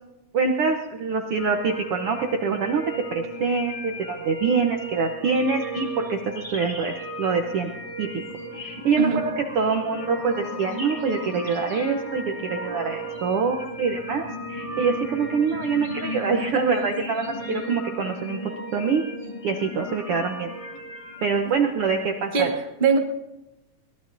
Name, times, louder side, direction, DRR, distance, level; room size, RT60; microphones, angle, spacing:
voice 1, 0.3-2.8 3.1-7.7 8.0-8.1 8.5-18.4 18.7-19.0 19.4-20.5 21.2-22.5, right 5 dB, 70° right, 3 dB, 1.4 m, -25 dB
sound 1, 1.4-21.3, equal, 15° left, 1.2 m, -35 dB
voice 2, 22.3-23.0, right 5 dB, 35° right, 2 dB, 0.7 m, -22 dB
22.0 x 18.5 x 2.6 m, 0.97 s
omnidirectional pair, 3.7 m